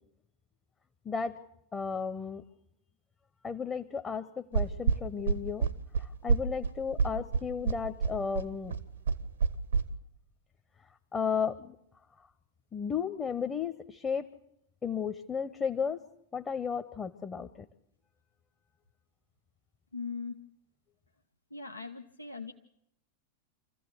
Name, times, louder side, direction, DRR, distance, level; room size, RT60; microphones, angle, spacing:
voice 1, 1.0-1.4 1.7-2.4 3.4-5.7 6.0-8.7 11.1-11.7 12.7-14.3 14.8-16.0 16.3-17.5, left 6 dB, 20° left, 7 dB, 0.9 m, -34 dB
sound 1, 4.5-9.8, right 5 dB, 70° right, 0.9 m, -28 dB
voice 2, 19.9-20.4 21.5-22.5, left 4 dB, 85° left, 4 dB, 0.7 m, -40 dB
25.5 x 15.0 x 8.0 m, 0.78 s
figure-of-eight pair, 90°, 0 cm